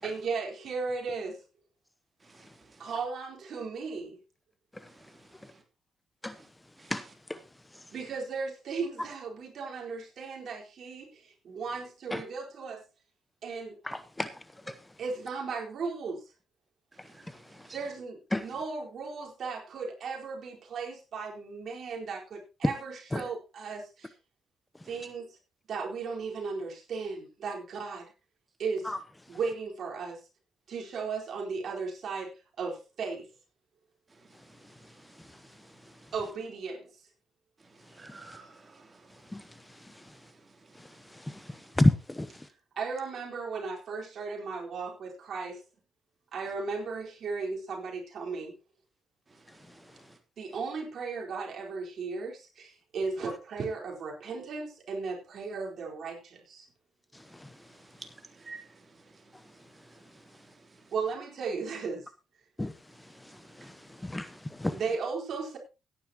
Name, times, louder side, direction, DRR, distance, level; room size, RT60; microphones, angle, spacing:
voice 1, 0.0-1.4 2.8-4.2 7.9-12.8 13.4-13.8 15.0-16.3 17.7-24.1 24.8-25.4 25.7-28.1 28.6-28.9 29.3-30.2 30.7-32.3 32.6-33.3 36.1-37.1 42.8-45.6 46.3-48.5 50.4-56.7 60.9-62.1 64.7-65.6, right 4 dB, 60° right, 4.4 m, -36 dB
voice 2, 2.2-2.8 6.4-6.5 6.8-6.9 17.0-17.8 34.8-35.2 37.9-39.3 40.0-40.1 40.7-41.7 49.5-49.6 57.7-59.1 59.5-60.4 60.8-60.9 63.5-64.1, right 3 dB, 25° right, 3.3 m, -53 dB
voice 3, 13.8-14.3 18.3-18.4 23.1-23.2 28.8-29.0 39.3-39.4 41.3-41.4 41.8-42.3 62.6-62.7 63.6-63.7 64.0-64.7, left 1 dB, 10° left, 0.8 m, -28 dB
17.0 x 10.0 x 3.0 m
cardioid pair, 90°, 0 cm